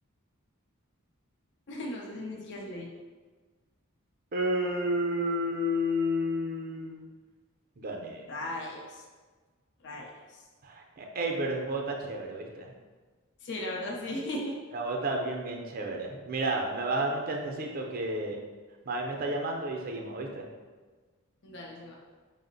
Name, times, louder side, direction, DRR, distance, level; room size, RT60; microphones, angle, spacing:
voice 1, 1.7-2.9 8.3-9.0 9.8-10.4 13.4-14.5 21.4-22.0, left 1 dB, 55° left, -1 dB, 0.5 m, -37 dB
voice 2, 4.3-7.1 7.8-8.3 10.6-12.7 14.7-18.4 18.8-20.5, equal, 45° right, 1 dB, 0.5 m, -31 dB
5.1 x 2.0 x 3.8 m, 1.4 s
head